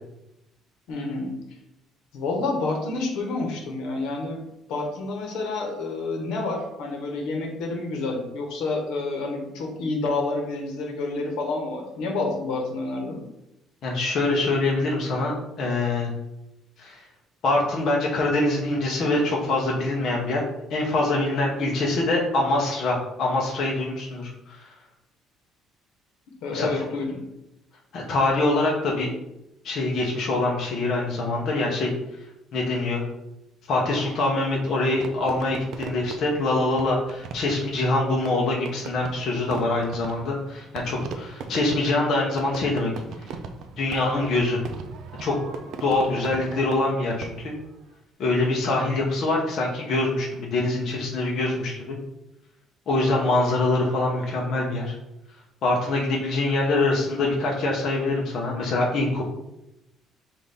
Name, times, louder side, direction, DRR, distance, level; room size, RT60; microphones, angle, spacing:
voice 1, 0.9-1.3 2.1-4.4 4.7-13.2 26.4-27.2, left 3 dB, 75° left, 1 dB, 1.0 m, -29 dB
voice 2, 13.8-16.1 16.8-17.0 17.4-20.4 20.7-24.7 26.5-26.8 27.9-29.1 29.6-31.9 32.5-33.1 33.7-42.9 43.8-44.6 45.2-45.3 45.8-47.5 48.2-52.0 52.9-54.9 55.6-59.2, left 2 dB, 45° left, -2 dB, 0.8 m, -24 dB
Fireworks, 35.0-47.7, right 5 dB, 55° right, 0.4 m, -39 dB
5.7 x 2.5 x 3.4 m, 0.88 s
cardioid pair, 170°, 0 cm